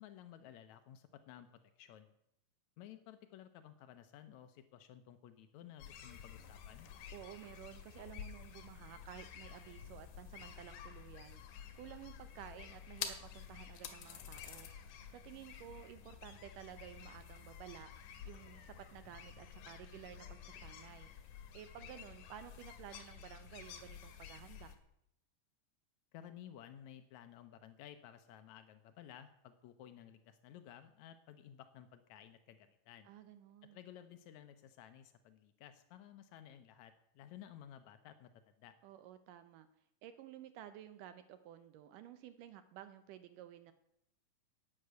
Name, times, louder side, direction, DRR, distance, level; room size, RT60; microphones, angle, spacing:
voice 1, 0.0-2.1 2.8-6.9 26.1-33.1 33.7-38.7, left 10 dB, 90° left, 9 dB, 1.6 m, -55 dB
sound 1, 5.8-24.8, left 8 dB, 70° left, 2.7 m, -51 dB
voice 2, 7.1-11.4 11.8-14.8 15.1-17.9 18.2-21.1 21.5-24.7 33.1-33.8 38.8-39.7 40.0-43.7, right 11 dB, 75° right, 11 dB, 2.0 m, -53 dB
11.0 x 8.5 x 8.0 m, 0.80 s
omnidirectional pair, 4.3 m